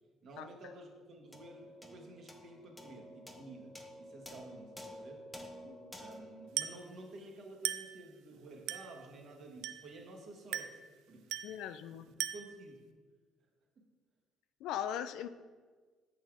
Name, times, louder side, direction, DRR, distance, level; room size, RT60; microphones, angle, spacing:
voice 1, 0.2-5.2 5.9-10.8 11.1-11.4 12.1-12.8 13.8-13.9, right 2 dB, 50° right, 1 dB, 1.3 m, -52 dB
sound 1, 1.3-7.9, equal, 5° left, 0.6 m, -52 dB
Glass, 6.6-6.9 7.6-8.0 8.7-9.0 9.6-10.0 10.5-10.9 11.3-11.6 12.2-12.6, right 11 dB, 80° right, 0.4 m, -38 dB
voice 2, 11.4-12.1 14.6-15.3, left 10 dB, 80° left, 13 dB, 0.3 m, -39 dB
7.1 x 4.1 x 4.6 m, 1.5 s
cardioid pair, 130°, 0 cm